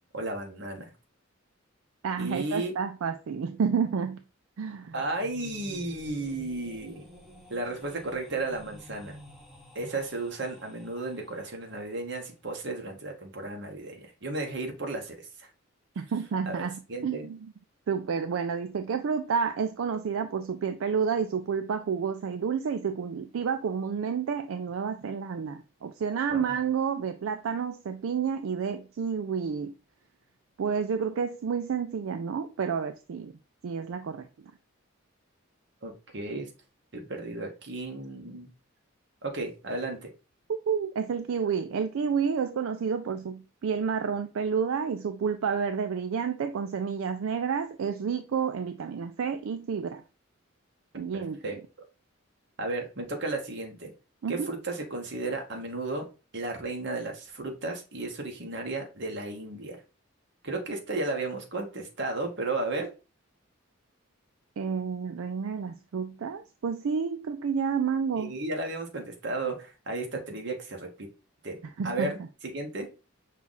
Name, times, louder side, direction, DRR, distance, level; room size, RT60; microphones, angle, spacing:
voice 1, 0.1-0.9 2.2-2.7 4.9-7.1 7.5-9.2 9.7-15.5 16.5-16.6 16.9-17.3 26.3-26.6 35.8-36.5 36.9-38.5 39.2-40.1 51.1-51.6 52.6-53.9 54.3-56.1 56.3-59.8 60.4-62.9 68.2-71.1 71.4-71.6 71.8-72.2 72.5-72.9, right 2 dB, 55° right, 1.0 m, -34 dB
voice 2, 2.0-4.2 4.6-4.9 16.0-17.5 17.9-29.7 30.6-33.3 33.6-34.3 40.5-50.0 51.0-51.6 54.2-54.5 64.6-68.3 71.8-72.2, right 6 dB, 75° right, 0.4 m, -30 dB
sound 1, 4.9-11.7, left 1 dB, ahead, 0.7 m, -50 dB
5.6 x 2.4 x 3.9 m
head